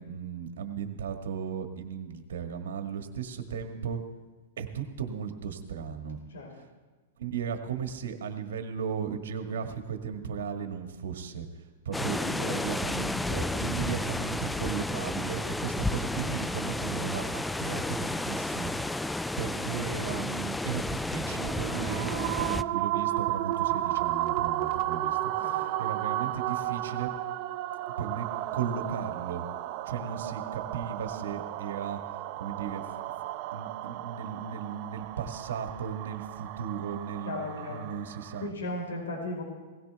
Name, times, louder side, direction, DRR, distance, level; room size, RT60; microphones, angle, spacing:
voice 1, 0.0-4.0 4.6-6.2 6.5-6.6 7.2-19.1 19.4-27.1 28.0-28.3 28.5-29.4 29.8-32.0 32.4-32.8 33.5-38.4, right 7 dB, 80° right, 5 dB, 1.6 m, -36 dB
sound 1, 11.9-22.6, left 2 dB, 5° left, 0.3 m, -32 dB
voice 2, 12.2-12.8 13.5-13.9 25.4-25.6 37.2-37.9 38.4-39.4, left 2 dB, 85° left, 0 dB, 4.6 m, -36 dB
sound 2, 21.2-38.5, right 14 dB, 45° right, 0.7 m, -33 dB
17.5 x 16.5 x 3.4 m, 1.3 s
hypercardioid pair, 125°, 0 cm